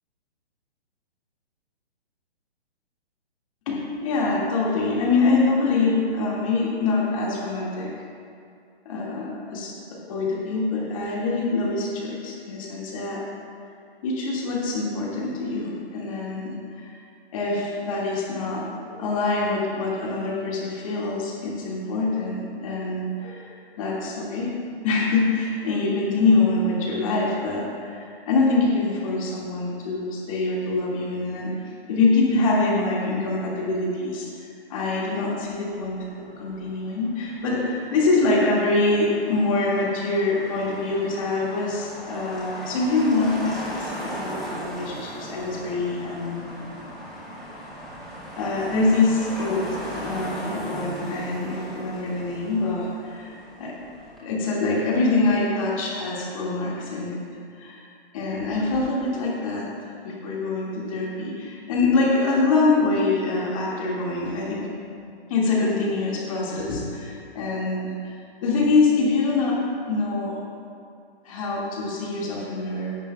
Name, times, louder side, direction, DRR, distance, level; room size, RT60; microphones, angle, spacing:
voice 1, 3.7-7.9 8.9-13.2 14.0-16.9 17.3-23.5 23.8-24.5 24.8-31.5 31.9-36.1 36.4-46.4 48.4-49.7 50.0-53.7 54.2-57.2 57.6-57.8 58.1-59.7 60.0-64.7 65.3-68.0 68.4-69.6 69.9-70.4 71.2-72.9, left 3 dB, 30° left, -4 dB, 2.1 m, -24 dB
Motor vehicle (road), 35.4-54.2, equal, ahead, 0.7 m, -38 dB
16.0 x 10.5 x 2.3 m, 2.4 s
hypercardioid pair, 165°, 32 cm